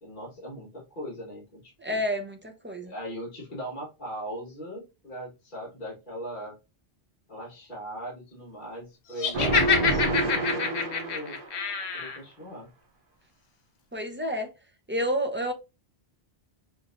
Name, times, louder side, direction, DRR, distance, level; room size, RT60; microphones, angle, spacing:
voice 1, 0.0-2.0 2.8-6.5 7.3-11.4 11.9-12.7, equal, 50° left, 1.6 m, -39 dB
voice 2, 1.8-2.9 13.9-14.5 14.9-15.5, equal, 15° right, 0.6 m, -29 dB
Laughter, 9.2-12.2, left 6 dB, 90° left, 1.1 m, -26 dB
sound 1, 9.3-11.7, right 2 dB, 60° right, 0.8 m, -28 dB
5.7 x 2.7 x 2.5 m
omnidirectional pair, 1.1 m